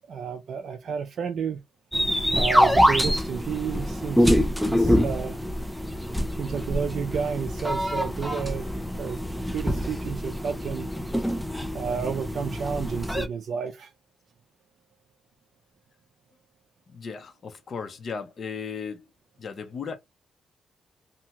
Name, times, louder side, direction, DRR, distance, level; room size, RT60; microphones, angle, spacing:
voice 1, 0.1-1.6 2.3-4.3 4.6-5.4 6.3-8.7 9.0-9.2 9.5-10.9 11.7-13.9, right 7 dB, 60° right, 0.4 m, -31 dB
sound 1, 1.9-13.3, equal, ahead, 0.4 m, -25 dB
voice 2, 16.9-19.1 19.4-20.0, left 6 dB, 45° left, 0.7 m, -36 dB
2.7 x 2.2 x 2.8 m
cardioid pair, 110°, 0 cm